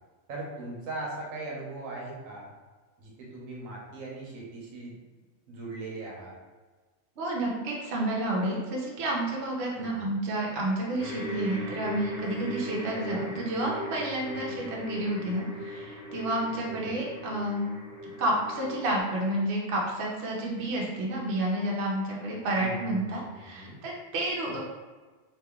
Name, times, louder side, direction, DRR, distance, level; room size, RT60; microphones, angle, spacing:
voice 1, 0.3-2.5 3.0-4.9 5.5-6.3 9.8-10.1 12.9-13.2 14.3-14.6 16.7-16.9 22.5-23.2 23.5-23.8, right 2 dB, 85° right, -3 dB, 1.2 m, -39 dB
voice 2, 7.2-17.7 18.2-24.6, right 1 dB, 60° right, -3 dB, 0.9 m, -30 dB
sound 1, 11.0-19.0, left 1 dB, 55° left, 1.4 m, -39 dB
2.9 x 2.7 x 3.5 m, 1.3 s
omnidirectional pair, 1.4 m